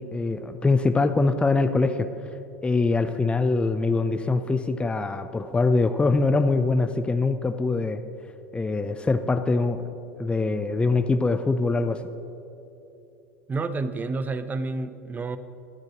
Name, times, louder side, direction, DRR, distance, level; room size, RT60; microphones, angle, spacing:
voice 1, 0.0-2.1 2.6-8.0 8.5-9.9 10.2-12.0, left 3 dB, 15° left, 9 dB, 0.7 m, -23 dB
voice 2, 13.5-15.4, right 3 dB, 20° right, 12 dB, 0.8 m, -29 dB
27.5 x 10.5 x 3.2 m, 2.9 s
hypercardioid pair, 85°, 8 cm